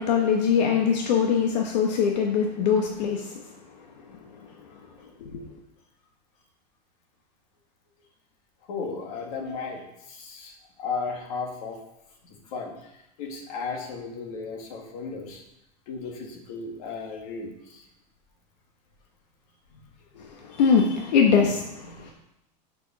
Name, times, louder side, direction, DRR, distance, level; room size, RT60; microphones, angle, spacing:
voice 1, 0.0-3.4 5.2-5.5 20.2-22.1, left 6 dB, 85° left, 1 dB, 1.3 m, -23 dB
voice 2, 8.7-11.8 12.2-12.9 13.2-15.4 15.9-17.8 19.7-19.8 21.9-22.1, left 4 dB, 60° left, 1 dB, 2.0 m, -35 dB
6.8 x 5.5 x 6.2 m, 0.84 s
supercardioid pair, 165°, 21 cm